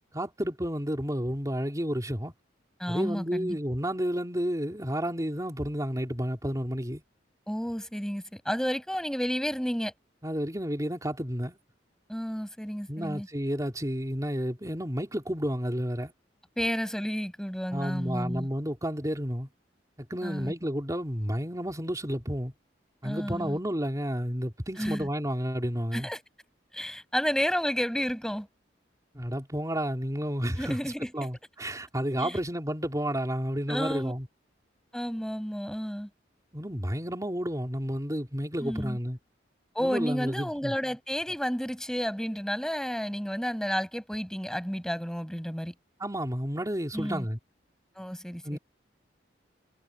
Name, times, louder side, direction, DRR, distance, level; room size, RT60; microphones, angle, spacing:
voice 1, 0.1-2.3 2.9-7.0 10.2-11.6 12.9-16.1 17.7-19.5 20.0-22.5 23.0-26.1 29.1-30.8 31.1-34.3 36.5-39.2 39.8-40.7 46.0-47.4 48.4-48.6, equal, 20° right, 3.8 m, -31 dB
voice 2, 2.8-3.6 7.5-9.9 12.1-13.3 16.6-18.5 20.2-20.5 23.0-23.6 24.8-25.1 25.9-26.2 26.7-28.5 30.6-31.3 32.2-32.4 33.7-34.1 34.9-36.1 38.6-39.0 39.8-45.7 46.9-47.3 48.0-48.6, equal, 5° left, 7.1 m, -31 dB
head